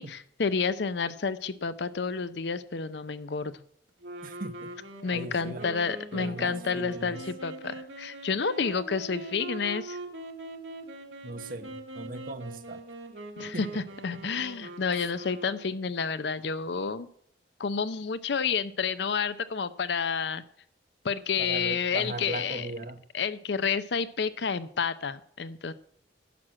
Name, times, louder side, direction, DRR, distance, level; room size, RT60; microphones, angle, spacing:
voice 1, 0.0-3.5 5.0-10.0 13.4-17.1 17.6-20.4 21.0-22.7 23.1-25.7, left 5 dB, 65° left, 14 dB, 0.6 m, -30 dB
sound 1, 4.0-15.9, right 2 dB, 80° right, 1.5 m, -42 dB
voice 2, 4.2-4.7 5.1-5.7 6.1-7.2 11.2-12.8 13.5-13.6 21.4-23.0, right 2 dB, 50° right, 9 dB, 1.0 m, -38 dB
11.0 x 6.1 x 7.5 m, 0.66 s
head